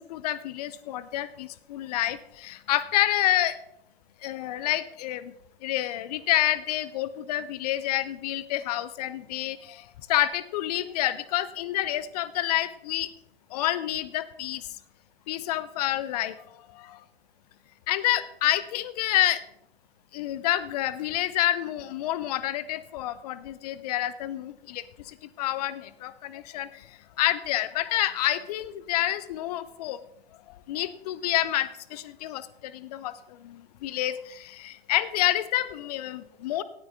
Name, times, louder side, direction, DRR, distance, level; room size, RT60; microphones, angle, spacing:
voice 1, 0.0-3.6 4.2-5.3 5.6-9.8 10.1-13.1 13.5-14.7 15.3-16.4 16.7-17.0 17.9-19.4 20.1-26.8 27.2-30.0 30.7-36.6, left 14 dB, 40° left, 16 dB, 0.9 m, -28 dB
18.0 x 13.0 x 3.6 m, 0.81 s
figure-of-eight pair, 110°, 31 cm